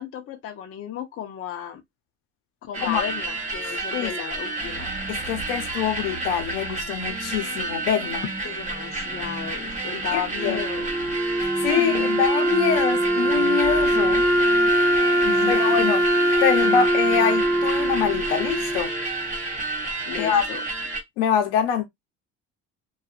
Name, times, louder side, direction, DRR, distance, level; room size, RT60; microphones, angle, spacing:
voice 1, 0.0-1.8 2.6-5.0 8.4-10.9 11.8-12.2 15.2-15.8 20.1-20.6, left 10 dB, 40° left, 0.7 m, -34 dB
sound 1, 2.7-21.0, right 3 dB, 20° right, 1.3 m, -30 dB
voice 2, 3.6-4.1 5.1-8.2 10.1-10.6 11.4-14.2 15.5-16.0 16.4-18.9 19.9-20.4 21.2-21.8, left 8 dB, 90° left, 0.8 m, -25 dB
Wind instrument woodwind instrument, 10.4-19.4, right 1 dB, 40° right, 1.0 m, -22 dB
2.7 x 2.4 x 2.4 m
cardioid pair, 105°, 35 cm